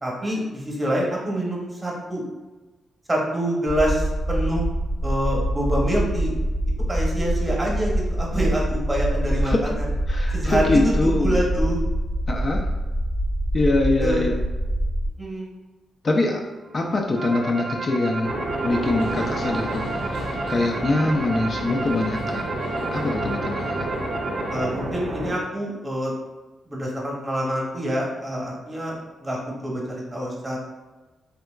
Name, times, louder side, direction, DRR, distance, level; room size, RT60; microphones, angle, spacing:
voice 1, 0.0-2.2 3.1-4.7 5.0-6.3 6.9-9.9 10.3-11.8 14.0-14.2 15.2-15.5 24.5-26.1 26.7-29.4 29.6-30.6, equal, 20° right, -3 dB, 0.9 m, -26 dB
sound 1, 3.7-15.1, right 1 dB, 5° left, 0.6 m, -25 dB
voice 2, 9.4-9.8 10.1-11.4 12.3-12.7 13.5-14.4 16.0-16.4 16.7-18.4 18.6-20.1 20.5-22.6 22.9-23.9, left 2 dB, 45° left, 1 dB, 0.4 m, -23 dB
sound 2, 16.8-24.7, right 2 dB, 45° right, 0.4 m, -32 dB
sound 3, 18.2-25.4, right 1 dB, 90° right, 0.6 m, -30 dB
3.4 x 2.8 x 2.3 m, 1.2 s
cardioid pair, 85°, 0 cm